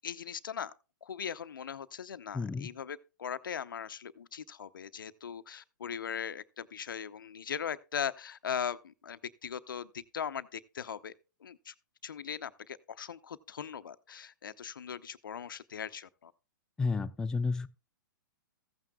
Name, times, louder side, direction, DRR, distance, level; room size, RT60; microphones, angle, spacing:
voice 1, 0.0-0.7 1.0-11.1 11.4-11.7 12.0-16.3, left 8 dB, 75° left, 0.7 m, -39 dB
voice 2, 2.3-2.7 16.8-17.7, left 4 dB, 5° left, 0.4 m, -31 dB
15.0 x 9.0 x 2.3 m
hypercardioid pair, 125°, 11 cm